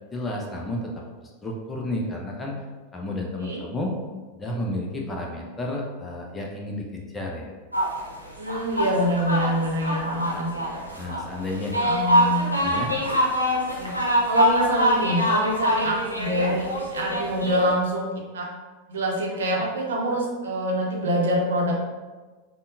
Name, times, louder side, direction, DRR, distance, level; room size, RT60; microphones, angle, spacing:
voice 1, 0.1-0.9 1.2-2.6 2.9-4.0 4.3-7.5 11.0-11.8 12.6-12.9, left 1 dB, 15° left, -1 dB, 0.6 m, -31 dB
sound 1, 7.7-17.7, equal, 90° left, 0.7 m, -24 dB
voice 2, 8.4-11.1 11.8-12.6 13.8-13.9 14.3-18.5 18.9-21.7, equal, 60° right, -1 dB, 0.7 m, -26 dB
5.3 x 2.2 x 2.6 m, 1.3 s
figure-of-eight pair, 90°, 0 cm